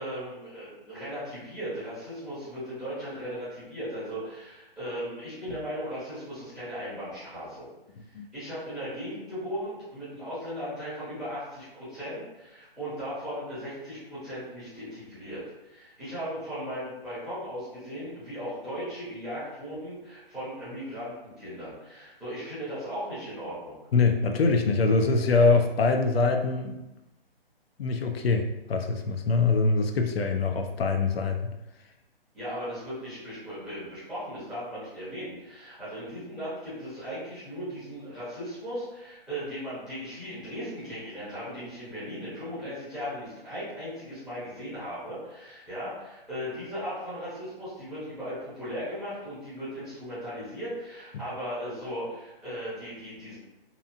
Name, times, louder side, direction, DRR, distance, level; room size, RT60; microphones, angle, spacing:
voice 1, 0.0-7.7 8.3-23.8 32.3-53.4, equal, ahead, -14 dB, 0.7 m, -37 dB
voice 2, 8.0-8.3 23.9-26.8 27.8-31.4, left 4 dB, 75° left, 4 dB, 0.4 m, -24 dB
2.8 x 2.4 x 2.5 m, 0.97 s
figure-of-eight pair, 145°, 30 cm